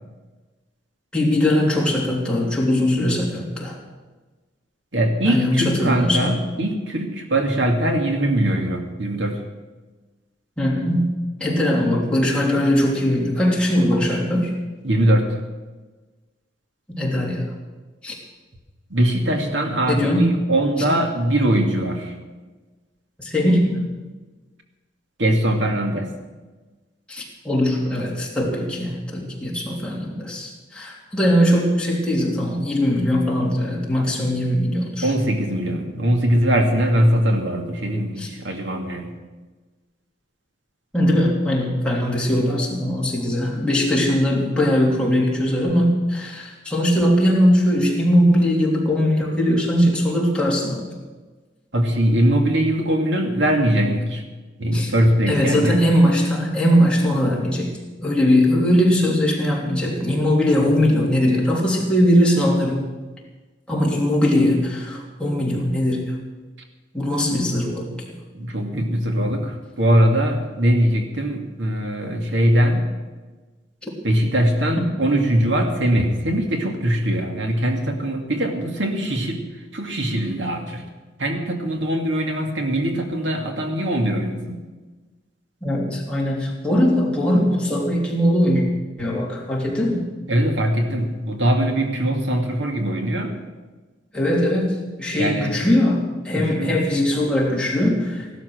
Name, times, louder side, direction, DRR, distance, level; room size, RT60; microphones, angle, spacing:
voice 1, 1.1-3.8 5.2-6.3 10.6-11.1 11.4-14.5 16.9-17.4 18.0-18.2 19.8-20.3 20.8-20.9 23.2-23.8 27.1-35.1 38.2-38.3 40.9-50.9 54.7-54.9 55.3-62.9 63.7-66.2 66.9-67.9 74.8-74.9 85.6-88.6 89.0-90.0 94.1-98.4, equal, 5° left, -4 dB, 3.3 m, -20 dB
voice 2, 4.9-9.4 14.8-15.3 18.9-22.1 25.2-26.1 35.0-39.1 51.7-54.2 54.6-55.9 68.3-72.9 74.0-79.4 79.7-80.8 81.2-84.6 90.3-93.3 95.1-95.6 96.3-96.8, right 1 dB, 80° right, 3 dB, 2.2 m, -21 dB
16.0 x 12.0 x 6.4 m, 1.3 s
head